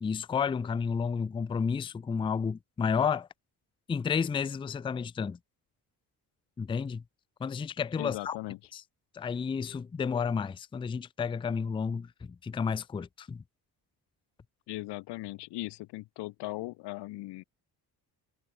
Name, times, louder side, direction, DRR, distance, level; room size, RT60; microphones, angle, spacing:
voice 1, 0.0-3.3 3.9-5.4 6.6-7.0 7.4-8.4 8.7-8.8 9.1-13.4, left 6 dB, 15° left, 0.3 m, -31 dB
voice 2, 8.0-8.6 14.7-17.4, left 19 dB, 90° left, 0.7 m, -38 dB
cardioid pair, 175°, 40 cm